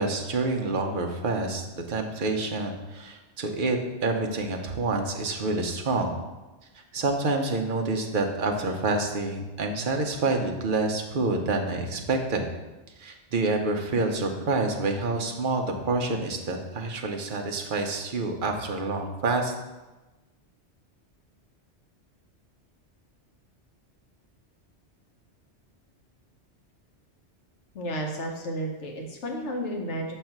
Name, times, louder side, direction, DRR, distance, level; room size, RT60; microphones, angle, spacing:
voice 1, 0.0-6.2 6.9-12.5 13.0-19.5, right 3 dB, 50° right, 3 dB, 0.9 m, -27 dB
voice 2, 27.7-30.1, equal, 85° left, 2 dB, 1.3 m, -32 dB
6.4 x 3.3 x 5.8 m, 1.1 s
omnidirectional pair, 1.2 m